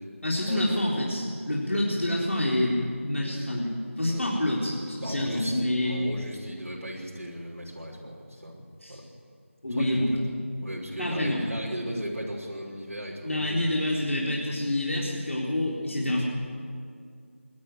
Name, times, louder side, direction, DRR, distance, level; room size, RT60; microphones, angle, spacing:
voice 1, 0.2-6.0 8.8-9.0 9.6-10.1 11.0-11.4 13.2-16.2, left 1 dB, 65° left, -4 dB, 3.9 m, -27 dB
voice 2, 5.0-8.6 8.9-9.1 9.7-10.2 10.6-13.7, equal, 80° right, -4 dB, 5.8 m, -37 dB
22.5 x 13.0 x 9.2 m, 2.3 s
figure-of-eight pair, 180°, 8 cm